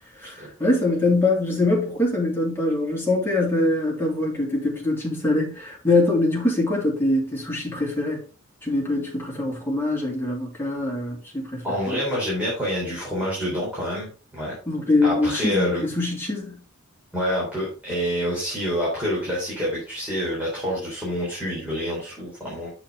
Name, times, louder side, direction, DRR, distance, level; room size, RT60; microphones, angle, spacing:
voice 1, 0.2-8.2 8.6-12.0 14.7-16.6, left 2 dB, 10° left, 3.0 m, -23 dB
voice 2, 11.6-14.1 14.3-14.5 15.0-15.8 17.1-22.7, equal, 5° right, 3.5 m, -27 dB
7.5 x 6.7 x 3.7 m
head